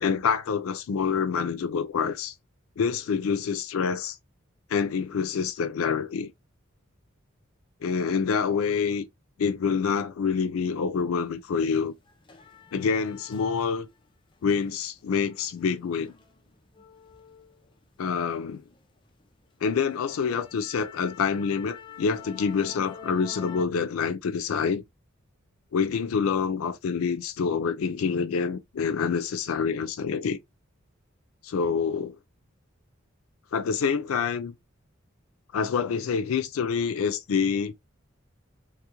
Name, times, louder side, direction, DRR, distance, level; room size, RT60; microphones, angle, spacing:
voice 1, 0.0-2.3 2.8-4.2 4.7-6.3 7.8-9.1 9.4-11.9 12.7-13.9 14.4-16.1 18.0-18.6 19.6-24.8 25.7-30.4 31.4-32.2 33.5-34.5 35.5-37.7, left 6 dB, 90° left, 0.4 m, -27 dB
sound 1, 11.1-11.3 11.7-14.0 14.4-18.2 18.6-18.8 19.2-19.3 19.7-23.7, left 6 dB, 25° left, 0.5 m, -48 dB
3.4 x 2.4 x 2.8 m
head